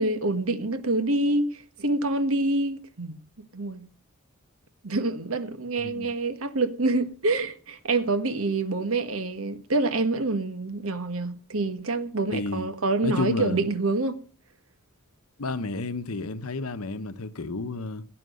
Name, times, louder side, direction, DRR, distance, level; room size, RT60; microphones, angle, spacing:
voice 1, 0.0-3.1 3.5-3.8 4.8-14.2, right 2 dB, 75° right, 1.5 m, -26 dB
voice 2, 12.3-12.7 13.0-13.6 15.4-18.0, left 3 dB, 90° left, 1.0 m, -31 dB
17.0 x 8.7 x 6.5 m
head